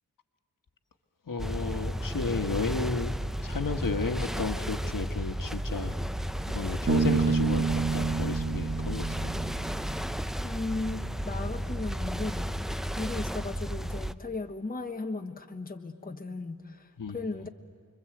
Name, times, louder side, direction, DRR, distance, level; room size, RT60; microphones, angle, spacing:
voice 1, 1.3-5.9 6.5-9.3 17.0-17.4, left 4 dB, 65° left, 5 dB, 1.6 m, -33 dB
sound 1, 1.4-14.1, equal, ahead, 0.6 m, -33 dB
Bass guitar, 6.9-10.4, right 5 dB, 40° right, 1.2 m, -29 dB
voice 2, 10.4-12.5 13.0-17.5, left 3 dB, 25° left, 4 dB, 1.3 m, -36 dB
29.5 x 22.5 x 7.9 m, 2.2 s
wide cardioid pair, 70°, 35 cm